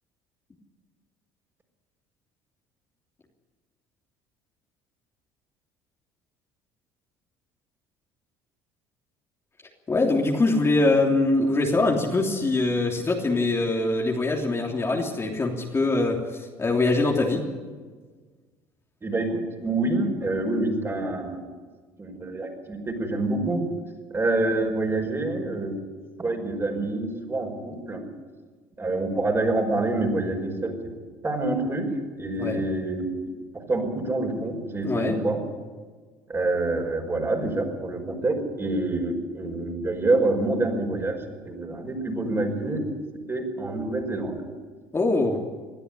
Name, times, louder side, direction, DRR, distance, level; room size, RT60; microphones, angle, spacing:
voice 1, 9.9-17.4 32.4-32.6 34.8-35.1 44.9-45.4, left 2 dB, 25° left, 0 dB, 3.2 m, -23 dB
voice 2, 19.0-21.5 22.0-23.6 24.1-25.8 26.2-28.0 28.8-30.8 31.2-31.9 32.2-33.2 33.5-35.4 36.3-41.2 41.4-42.8 43.3-44.4, right 2 dB, 25° right, 2 dB, 5.5 m, -26 dB
21.5 x 12.5 x 9.9 m, 1.4 s
hypercardioid pair, 70°, 10 cm